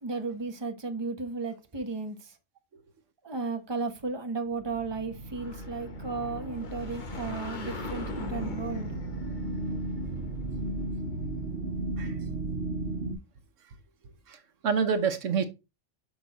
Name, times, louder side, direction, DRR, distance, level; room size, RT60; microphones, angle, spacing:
voice 1, 0.0-2.4 3.2-9.0, right 4 dB, 20° right, 1.0 m, -34 dB
sound 1, 4.6-13.1, right 2 dB, 60° right, 2.1 m, -35 dB
sound 2, 5.1-11.7, left 4 dB, 40° left, 1.2 m, -42 dB
voice 2, 14.3-15.4, right 6 dB, 80° right, 1.3 m, -27 dB
6.8 x 6.0 x 4.0 m
omnidirectional pair, 1.3 m